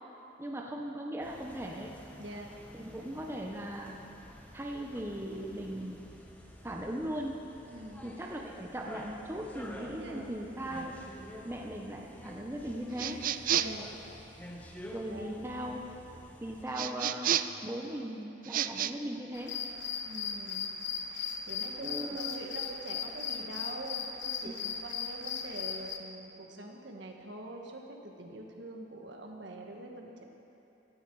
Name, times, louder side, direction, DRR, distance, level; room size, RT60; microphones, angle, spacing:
voice 1, 0.4-1.9 2.7-3.9 4.5-6.1 6.6-7.4 8.0-11.0 11.4-13.2 14.9-15.9 16.4-19.6 21.8-22.4 24.4-24.7, right 1 dB, 15° right, 0 dB, 0.9 m, -38 dB
sound 1, 1.2-16.7, equal, 10° left, 1.2 m, -49 dB
voice 2, 2.2-2.5 7.6-8.1 10.0-10.4 13.5-14.0 15.1-15.3 20.0-20.8 21.1-30.2, right 2 dB, 65° right, 1 dB, 1.6 m, -45 dB
sound 2, 13.0-13.9 16.7-17.6 18.4-18.9, right 10 dB, 45° right, 0.4 m, -30 dB
sound 3, 19.3-26.0, left 7 dB, 60° left, 1.0 m, -37 dB
17.0 x 13.5 x 4.8 m, 2.9 s
head